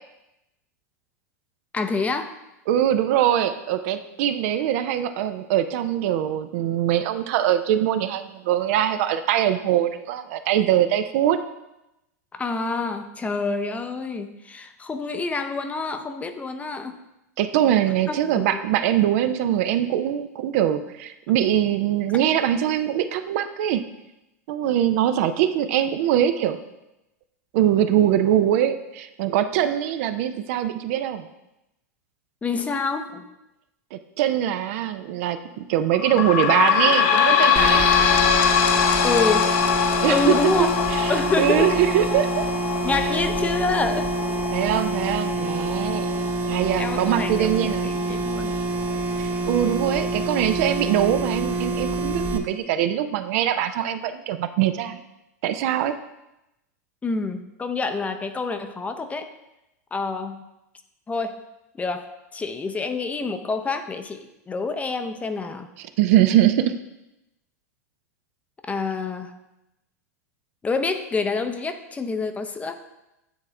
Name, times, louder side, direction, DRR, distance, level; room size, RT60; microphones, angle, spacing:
voice 1, 1.7-2.3 12.3-17.0 18.1-18.6 32.4-33.3 39.0-39.5 40.1-40.7 41.1-41.7 42.8-44.1 46.8-48.5 57.0-59.3 59.9-60.4 61.1-61.4 61.7-65.7 68.7-69.4 70.6-72.7, left 4 dB, 15° left, 8 dB, 0.5 m, -27 dB
voice 2, 2.7-11.4 17.4-23.8 24.5-26.6 27.5-31.3 33.9-37.8 40.0-40.3 40.6-42.5 44.5-46.1 46.5-47.9 49.2-55.0 55.4-55.9 65.8-66.8, right 11 dB, 55° right, 10 dB, 0.4 m, -22 dB
sound 1, 35.9-49.1 49.7-49.8 50.0-50.1 50.9-51.0, left 8 dB, 55° left, 0.8 m, -23 dB
sound 2, 37.6-52.4, right 2 dB, 20° right, 0.7 m, -27 dB
9.1 x 3.6 x 3.3 m, 0.91 s
hypercardioid pair, 100°, 9 cm